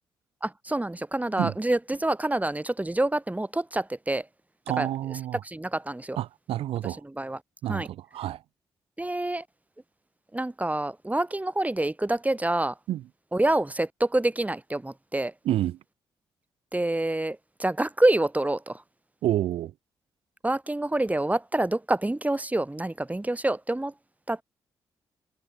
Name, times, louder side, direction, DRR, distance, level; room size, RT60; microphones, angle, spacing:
voice 1, 0.4-4.3 4.8-4.9 5.4-6.2 7.0-7.4 7.7-7.9 9.0-9.4 10.3-12.7 13.3-15.3 16.7-18.8 20.4-23.9 24.3-24.4, right 1 dB, 15° right, 3.6 m, -27 dB
voice 2, 4.7-5.4 6.2-7.0 7.6-8.4 12.9-13.0 15.4-15.8 19.2-19.7, right 13 dB, 80° right, 2.1 m, -28 dB
supercardioid pair, 45°, 10 cm